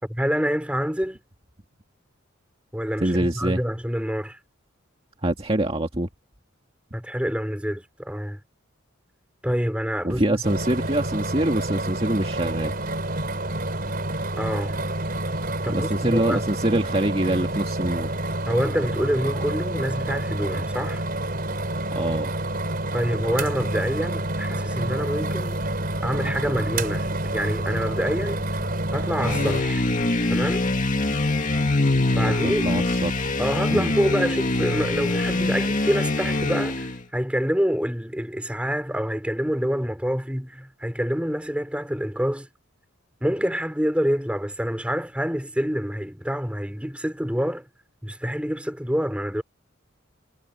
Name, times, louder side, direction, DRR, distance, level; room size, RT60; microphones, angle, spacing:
voice 1, 0.0-1.2 2.7-4.4 6.9-8.4 9.4-10.4 14.4-14.8 15.6-16.4 18.5-21.0 22.9-25.6 26.0-28.4 28.9-29.8 30.3-30.7 32.2-32.7 33.4-42.5 43.2-47.6 48.0-49.4, equal, 5° right, 4.0 m, -27 dB
voice 2, 3.0-3.6 5.2-6.1 10.0-12.7 15.7-18.1 21.9-22.3 32.4-33.3 33.7-33.9, right 1 dB, 30° right, 2.1 m, -25 dB
sound 1, 10.4-29.6, right 1 dB, 45° right, 5.0 m, -28 dB
sound 2, 29.2-37.0, left 2 dB, 40° left, 2.1 m, -24 dB
head